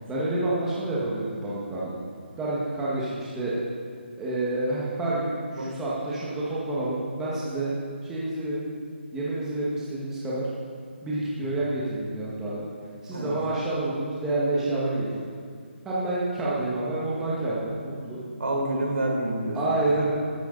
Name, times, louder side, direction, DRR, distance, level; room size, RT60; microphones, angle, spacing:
voice 1, 0.1-1.9 2.4-3.5 4.2-7.7 8.0-8.6 9.1-10.5 11.0-12.7 13.0-15.3 15.8-18.2 19.5-20.1, right 2 dB, 5° right, -8 dB, 1.6 m, -28 dB
voice 2, 18.4-20.1, right 1 dB, 80° right, -1 dB, 4.3 m, -28 dB
14.5 x 14.0 x 4.0 m, 2.2 s
hypercardioid pair, 170°, 6 cm